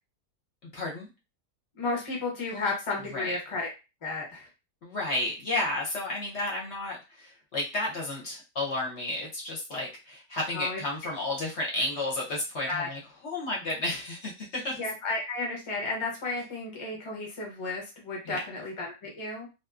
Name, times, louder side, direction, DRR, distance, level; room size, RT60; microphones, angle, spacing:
voice 1, 0.7-1.1 3.1-3.3 4.8-14.8 18.2-18.4, left 2 dB, 55° left, -3 dB, 0.9 m, -32 dB
voice 2, 1.8-3.7 4.0-4.5 10.5-10.8 12.7-12.9 14.7-19.5, left 3 dB, 30° left, -1 dB, 0.6 m, -33 dB
2.5 x 2.3 x 2.4 m, 0.28 s
omnidirectional pair, 1.6 m